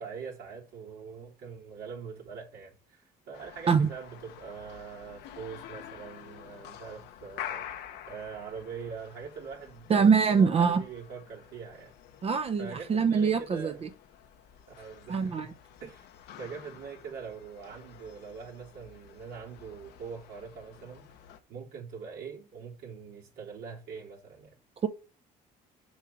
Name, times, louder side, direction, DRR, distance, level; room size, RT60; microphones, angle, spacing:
voice 1, 0.0-11.9 12.6-13.8 14.8-15.5 15.8-16.1 16.4-21.0 21.5-24.5, right 6 dB, 85° right, 3.3 m, -43 dB
sound 1, 3.3-21.4, left 10 dB, 80° left, 1.2 m, -48 dB
voice 2, 9.9-10.8 12.2-13.9 15.1-15.5 24.8-24.9, right 6 dB, 35° right, 0.7 m, -24 dB
7.2 x 4.9 x 5.7 m
cardioid pair, 110°, 17 cm